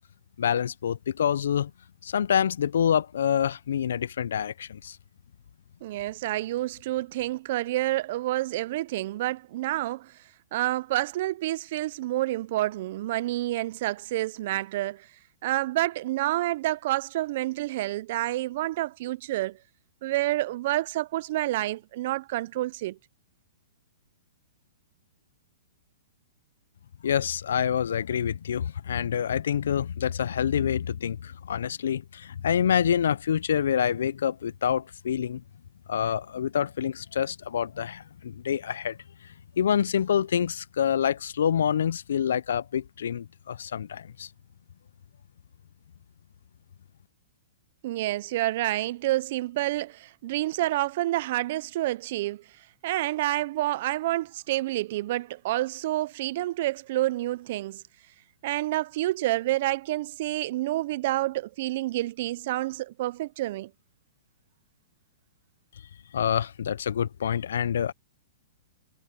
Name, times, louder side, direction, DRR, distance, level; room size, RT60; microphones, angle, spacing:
voice 1, 0.4-1.7 2.0-5.0 27.0-35.4 35.9-39.0 39.6-44.3 66.1-67.9, left 8 dB, 75° left, 0.3 m, -27 dB
voice 2, 5.8-10.1 10.5-15.1 15.4-19.6 20.0-23.0 47.8-52.4 52.8-57.8 58.4-63.7, right 16 dB, 40° right, 0.4 m, -28 dB
hypercardioid pair, 165°, 0 cm